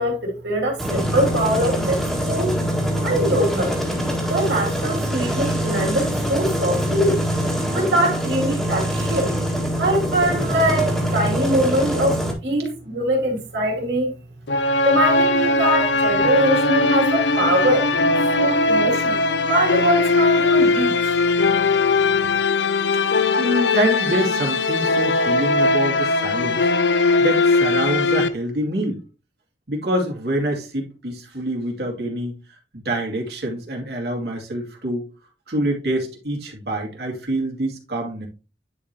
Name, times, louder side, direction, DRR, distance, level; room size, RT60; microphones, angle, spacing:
voice 1, 0.0-2.6 3.0-3.8 4.3-7.2 7.7-9.3 9.8-14.1 14.8-19.2 19.5-21.2, right 1 dB, 80° right, 2.8 m, -22 dB
sound 1, 0.8-12.3, equal, ahead, 1.8 m, -24 dB
sound 2, 14.5-28.3, left 3 dB, 80° left, 0.7 m, -19 dB
voice 2, 23.4-26.7 27.2-29.0 29.7-32.4 32.7-35.1 35.5-38.3, right 1 dB, 65° right, 2.7 m, -25 dB
10.0 x 5.0 x 2.9 m
head